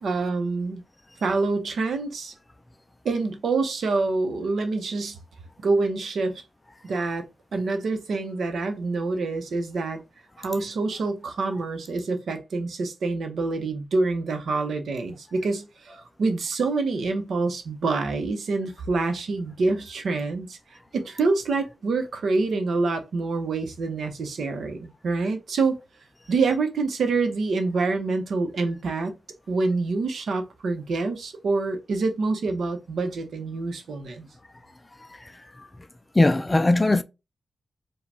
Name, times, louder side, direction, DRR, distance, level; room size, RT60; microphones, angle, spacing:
voice 1, 0.0-0.8 1.2-2.3 3.0-5.2 5.6-6.4 6.8-7.2 7.5-10.0 10.4-20.6 20.9-25.8 26.3-29.2 29.5-34.3, right 3 dB, 70° right, 0.8 m, -26 dB
voice 2, 35.0-35.7 36.1-37.0, left 2 dB, 15° left, 0.3 m, -22 dB
4.9 x 2.3 x 3.4 m
wide cardioid pair, 140°, 0 cm